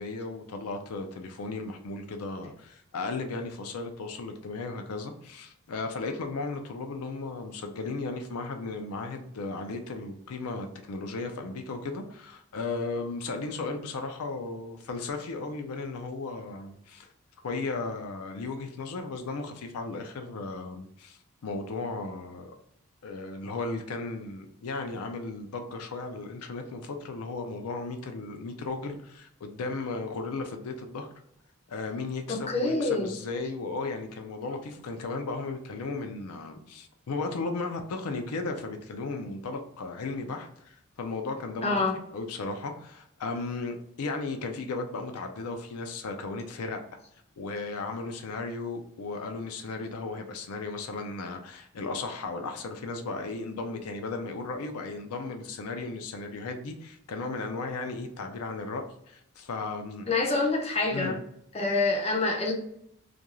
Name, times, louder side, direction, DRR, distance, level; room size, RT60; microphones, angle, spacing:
voice 1, 0.0-17.1 17.4-22.5 23.0-31.1 31.7-41.8 42.1-46.8 47.4-60.1 60.9-61.2, left 3 dB, 80° left, 5 dB, 0.4 m, -35 dB
voice 2, 32.3-33.2 41.6-42.0 60.1-61.2 61.5-62.5, left 3 dB, 25° left, 0 dB, 0.5 m, -26 dB
2.5 x 2.3 x 2.9 m, 0.73 s
head